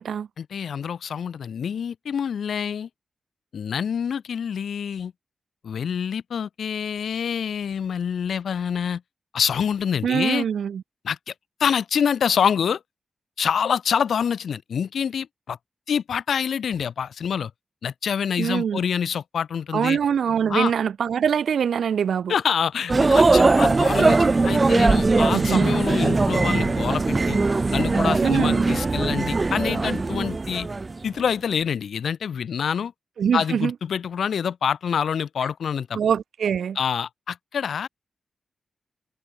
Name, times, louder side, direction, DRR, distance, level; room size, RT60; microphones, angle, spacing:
voice 1, 0.4-2.9 3.5-5.1 5.6-9.0 9.3-10.5 11.0-11.3 11.6-12.8 13.4-15.6 15.9-17.5 17.8-20.0 20.5-20.7 22.3-27.4 27.7-30.7 31.0-32.9 33.3-36.0 36.8-37.9, left 7 dB, 85° left, 2.4 m, -26 dB
voice 2, 10.0-10.8 18.4-18.8 19.7-22.3 25.3-25.7 28.2-28.6 33.2-33.7 35.9-36.8, right 7 dB, 85° right, 1.1 m, -23 dB
sound 1, 22.9-31.2, right 3 dB, 35° right, 0.7 m, -20 dB
cardioid pair, 65°, 0 cm